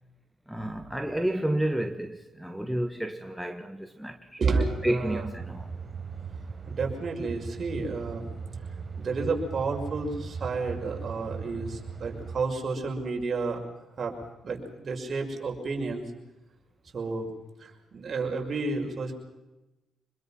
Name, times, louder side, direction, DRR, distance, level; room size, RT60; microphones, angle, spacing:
voice 1, 0.5-4.4 4.8-5.7, right 1 dB, 5° right, 1.4 m, -31 dB
voice 2, 4.4-5.2 6.7-8.3 8.9-13.6 14.0-14.1 14.4-16.0 16.9-17.3 17.6-19.1, right 4 dB, 45° right, 6.0 m, -31 dB
sound 1, 4.5-12.4, right 5 dB, 30° right, 4.4 m, -38 dB
26.5 x 21.5 x 5.9 m
cardioid pair, 90°, 0 cm